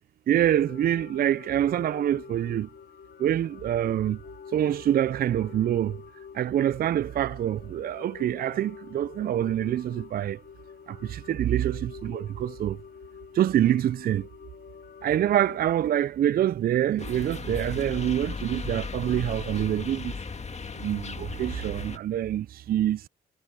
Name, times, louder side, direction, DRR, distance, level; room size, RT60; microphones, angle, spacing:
voice 1, 0.3-2.7 3.2-4.2 4.5-6.0 6.3-10.4 10.9-12.8 13.3-14.3 15.0-20.2 20.8-23.0, right 11 dB, 55° right, 0.4 m, -26 dB
sound 1, 0.6-15.7, left 7 dB, 65° left, 4.6 m, -47 dB
sound 2, 17.0-22.0, left 4 dB, 35° left, 1.8 m, -36 dB
supercardioid pair, 60°, 19 cm